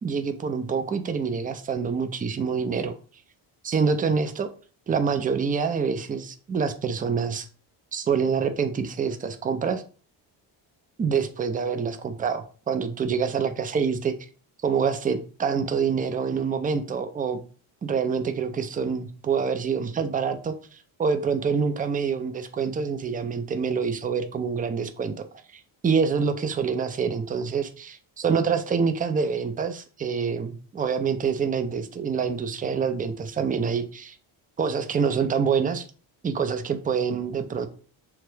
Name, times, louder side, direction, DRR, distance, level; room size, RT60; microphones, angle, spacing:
voice 1, 0.0-2.9 3.6-4.5 4.9-7.5 7.9-9.8 11.0-14.1 14.6-17.4 17.8-25.2 25.5-34.2 34.6-35.8 36.2-37.7, right 6 dB, 20° right, 8 dB, 0.3 m, -26 dB
2.9 x 2.2 x 3.2 m, 0.39 s
cardioid pair, 80°, 48 cm